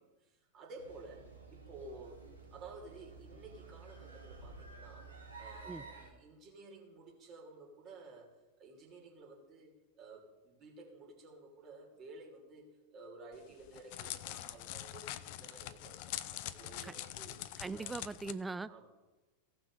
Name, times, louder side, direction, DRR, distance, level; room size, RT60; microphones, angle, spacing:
voice 1, 0.0-2.2 2.5-17.4 17.7-18.0 18.7-18.9, right 3 dB, 35° right, -1 dB, 3.4 m, -53 dB
sound 1, 0.8-6.1, right 4 dB, 85° right, 2.3 m, -52 dB
Crackle, 13.3-18.3, left 14 dB, 45° left, 0.6 m, -44 dB
voice 2, 17.6-18.7, right 3 dB, 10° right, 15 dB, 0.4 m, -40 dB
16.5 x 6.0 x 4.9 m, 1.2 s
figure-of-eight pair, 90°, 0 cm